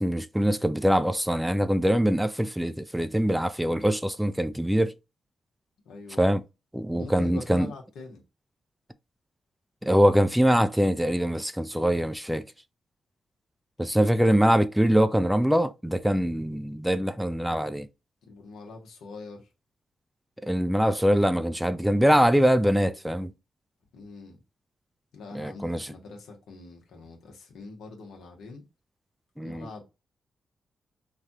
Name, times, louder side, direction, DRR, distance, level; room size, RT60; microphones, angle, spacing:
voice 1, 0.0-4.9 6.2-6.4 6.7-7.7 9.8-12.4 13.8-17.9 20.4-23.3 25.3-25.9 29.4-29.7, equal, 5° right, 0.4 m, -23 dB
voice 2, 5.8-6.2 6.9-8.2 18.3-19.5 23.9-24.4 25.1-28.6 29.4-29.8, left 4 dB, 80° left, 1.0 m, -43 dB
3.3 x 2.3 x 2.6 m
supercardioid pair, 45°, 0 cm